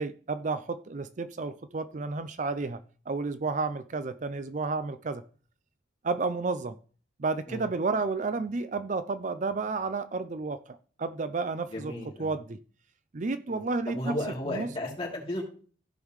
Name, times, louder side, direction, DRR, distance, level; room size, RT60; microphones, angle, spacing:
voice 1, 0.0-2.8 3.1-5.2 6.0-6.7 7.2-11.9 12.2-12.6 13.1-14.2 14.5-14.7, right 3 dB, 40° right, 0.5 m, -31 dB
voice 2, 11.7-12.3 13.5-13.6 13.9-15.4, left 1 dB, 30° left, 3.2 m, -34 dB
16.0 x 5.4 x 3.2 m
head